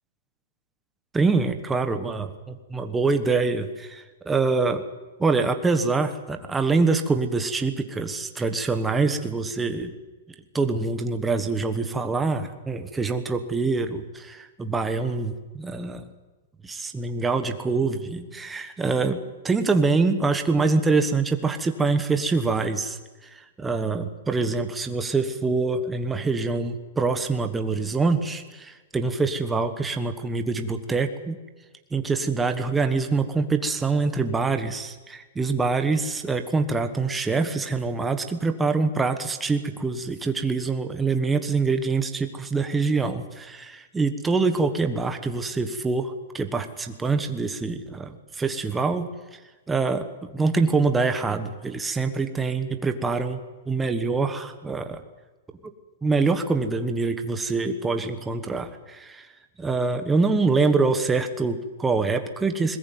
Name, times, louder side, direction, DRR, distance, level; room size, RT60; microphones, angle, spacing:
voice 1, 1.1-4.8 5.2-9.9 10.5-16.1 16.6-23.0 23.2-31.4 31.9-49.4 49.7-50.1 50.3-53.4 53.7-55.0 56.0-59.3 59.6-62.8, right 4 dB, 5° right, 7 dB, 1.3 m, -25 dB
21.5 x 20.5 x 9.3 m, 1.2 s
supercardioid pair, 175°, 0 cm